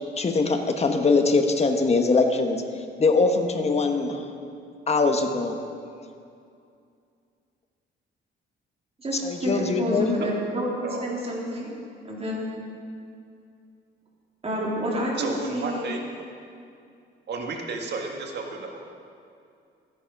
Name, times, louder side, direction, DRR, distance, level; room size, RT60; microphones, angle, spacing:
voice 1, 0.2-2.6 3.0-4.3 4.9-5.6 9.2-10.2, left 3 dB, 30° left, 5 dB, 1.3 m, -22 dB
voice 2, 9.0-11.7 12.0-12.5 14.4-15.8, equal, 30° right, -4 dB, 3.4 m, -29 dB
voice 3, 15.2-16.0 17.3-18.9, right 3 dB, 60° right, 2 dB, 1.7 m, -32 dB
14.0 x 10.0 x 4.7 m, 2.4 s
cardioid pair, 90°, 20 cm